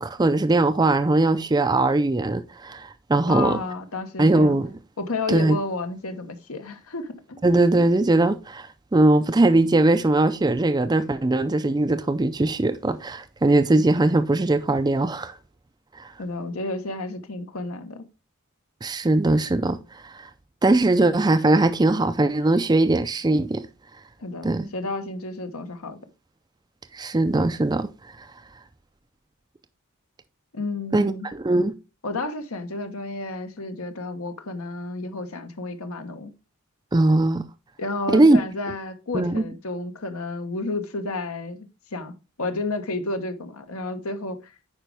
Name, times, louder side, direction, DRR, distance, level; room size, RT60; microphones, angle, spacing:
voice 1, 0.0-3.6 4.2-4.7 5.3-5.6 7.4-15.3 16.0-16.1 18.8-20.3 20.6-23.6 24.4-24.7 26.9-27.9 28.2-28.3 30.9-31.7 36.9-37.4 38.1-38.4 39.1-39.4, right 2 dB, 20° right, 0.4 m, -20 dB
voice 2, 3.3-4.6 5.0-7.4 16.2-18.0 24.2-26.0 30.5-31.3 32.0-36.3 37.8-44.5, left 2 dB, 75° left, 1.1 m, -31 dB
8.9 x 5.1 x 3.4 m
head